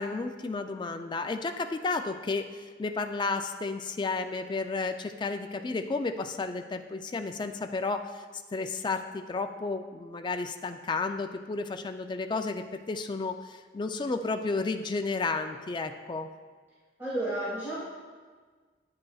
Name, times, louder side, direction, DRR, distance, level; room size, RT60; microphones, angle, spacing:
voice 1, 0.0-8.2 8.5-16.3, left 3 dB, 25° left, 7 dB, 0.3 m, -32 dB
voice 2, 17.0-17.8, right 1 dB, 15° right, -12 dB, 1.8 m, -31 dB
9.6 x 7.6 x 2.3 m, 1.5 s
head